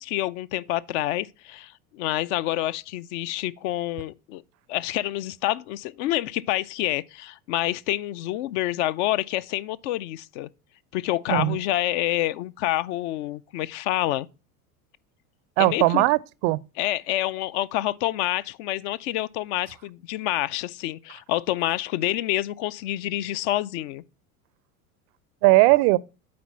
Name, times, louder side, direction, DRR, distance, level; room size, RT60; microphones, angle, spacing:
voice 1, 0.0-4.4 4.7-10.5 10.9-14.3 15.6-16.0 16.8-24.0, left 15 dB, 50° left, 0.5 m, -27 dB
voice 2, 15.6-16.6 25.4-26.0, right 20 dB, 50° right, 0.5 m, -19 dB
8.5 x 4.2 x 5.6 m
hypercardioid pair, 80°, 44 cm